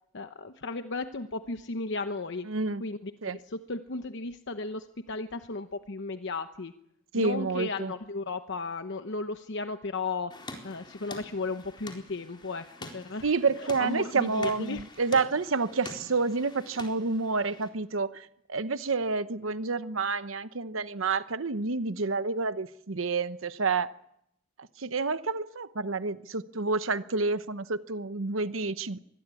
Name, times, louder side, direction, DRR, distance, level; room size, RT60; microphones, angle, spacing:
voice 1, 0.1-2.5 2.8-3.1 3.5-6.7 7.2-10.3 10.6-12.7 12.9-13.2 13.6-14.8, left 3 dB, 65° left, 8 dB, 1.0 m, -35 dB
voice 2, 2.5-2.8 3.2-3.4 7.1-7.9 13.2-23.9 24.8-29.0, right 4 dB, 85° right, 13 dB, 1.0 m, -29 dB
sound 1, 10.3-17.7, left 2 dB, 25° left, 4.2 m, -46 dB
25.0 x 20.5 x 8.4 m, 0.78 s
head